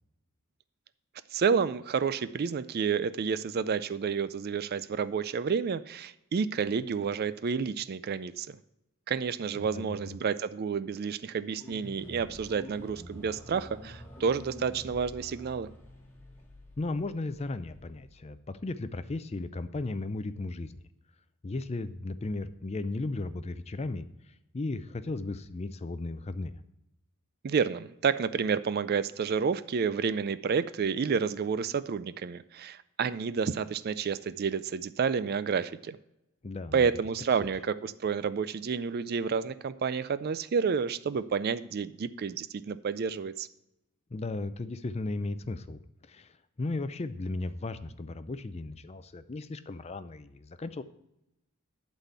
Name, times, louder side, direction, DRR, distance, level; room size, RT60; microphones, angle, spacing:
voice 1, 1.3-8.6 9.1-15.7 27.4-36.0 36.7-43.5, right 6 dB, 45° right, 15 dB, 0.4 m, -30 dB
voice 2, 9.5-10.2 16.8-20.8 21.4-24.1 24.5-26.6 36.4-36.9 44.1-50.8, left 2 dB, 30° left, 12 dB, 0.5 m, -35 dB
sound 1, 11.5-18.2, equal, 10° left, 2.1 m, -48 dB
11.5 x 4.2 x 8.1 m, 0.87 s
head